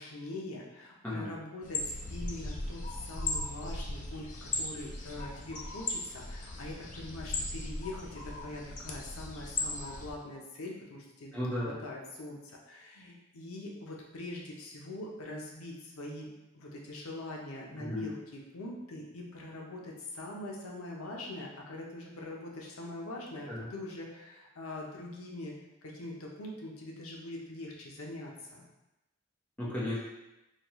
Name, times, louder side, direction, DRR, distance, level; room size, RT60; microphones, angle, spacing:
voice 1, 0.0-11.3 11.6-25.5 25.8-28.7, left 1 dB, 90° left, -1 dB, 0.6 m, -43 dB
voice 2, 1.0-1.4 11.3-11.8 17.8-18.1 23.5-23.7 29.6-30.0, left 1 dB, 10° left, -8 dB, 0.7 m, -34 dB
sound 1, 1.6-10.1, left 2 dB, 35° left, 0.3 m, -37 dB
4.0 x 2.2 x 3.0 m, 0.98 s
head